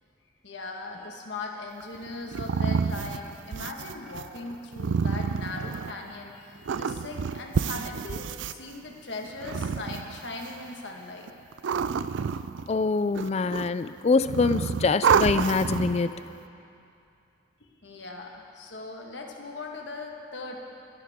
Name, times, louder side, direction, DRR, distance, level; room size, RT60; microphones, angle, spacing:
voice 1, 0.4-11.3 17.6-20.6, left 3 dB, 70° left, 1 dB, 1.5 m, -39 dB
sound 1, 1.8-6.1 6.6-8.5 9.3-10.5 11.3-12.8 13.1-13.8 14.2-16.1, right 6 dB, 80° right, 0.4 m, -28 dB
voice 2, 12.7-16.2, left 4 dB, 35° left, 13 dB, 0.3 m, -24 dB
23.0 x 10.5 x 3.6 m, 2.6 s
head